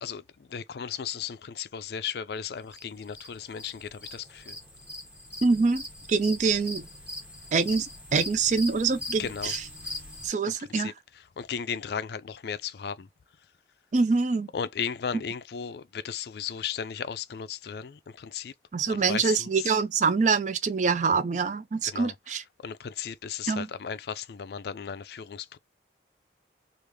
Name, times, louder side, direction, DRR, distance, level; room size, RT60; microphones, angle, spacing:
voice 1, 0.0-4.6 9.2-9.5 9.8-10.0 10.4-10.9 11.4-13.1 14.5-18.5 18.9-19.8 21.8-22.1 22.6-25.6, left 7 dB, 60° left, 0.4 m, -35 dB
sound 1, 2.7-10.3, left 1 dB, 5° right, 1.0 m, -41 dB
voice 2, 5.4-5.8 6.1-6.8 7.5-9.6 10.2-10.9 13.9-14.5 18.7-22.4 23.5-23.7, right 4 dB, 40° right, 0.4 m, -25 dB
3.2 x 2.4 x 3.4 m
head